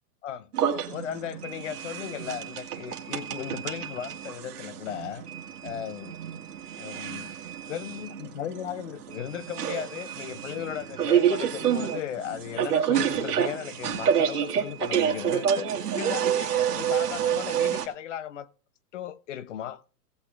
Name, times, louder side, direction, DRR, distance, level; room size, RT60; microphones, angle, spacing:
sound 1, 0.5-17.9, right 8 dB, 65° right, 1.9 m, -28 dB
voice 1, 0.9-5.2 5.6-6.2 6.8-7.3 7.7-18.5 18.9-19.8, left 10 dB, 45° left, 0.8 m, -36 dB
18.0 x 8.0 x 2.4 m
hypercardioid pair, 150°, 49 cm